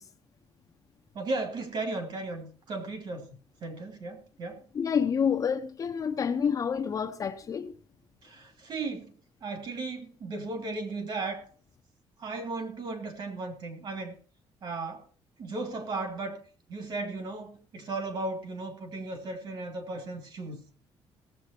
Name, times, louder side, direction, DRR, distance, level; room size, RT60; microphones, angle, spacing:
voice 1, 1.1-3.3 3.6-4.6 8.2-9.1 9.4-11.5 12.2-14.1 14.6-15.1 15.4-16.4 16.7-20.6, right 3 dB, 50° right, 2.8 m, -35 dB
voice 2, 4.7-7.7, left 7 dB, 35° left, 0.7 m, -28 dB
18.0 x 7.9 x 4.4 m
cardioid pair, 165°, 10 cm